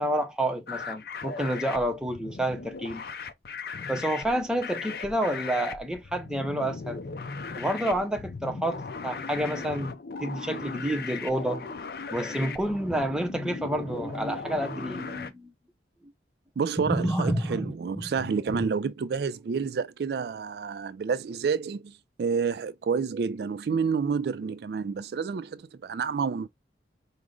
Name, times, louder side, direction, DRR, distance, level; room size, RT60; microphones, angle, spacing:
voice 1, 0.0-3.0 3.9-7.0 7.5-11.8 12.1-15.5 16.8-17.7 18.0-18.1, right 1 dB, 5° right, 0.6 m, -29 dB
sound 1, 0.7-15.3, left 4 dB, 55° left, 0.5 m, -38 dB
voice 2, 16.6-26.5, right 5 dB, 60° right, 0.3 m, -29 dB
4.8 x 2.1 x 3.7 m
head